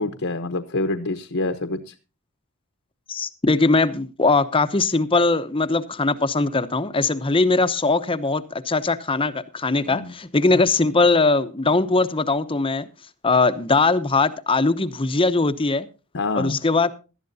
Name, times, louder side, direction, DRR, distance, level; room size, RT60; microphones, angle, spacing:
voice 1, 0.0-1.9 9.8-10.1 16.1-16.6, left 2 dB, 60° left, 7 dB, 1.0 m, -26 dB
voice 2, 3.1-12.9 13.2-15.9 16.3-16.9, left 3 dB, 25° left, 12 dB, 0.8 m, -20 dB
18.5 x 12.5 x 2.7 m, 0.32 s
head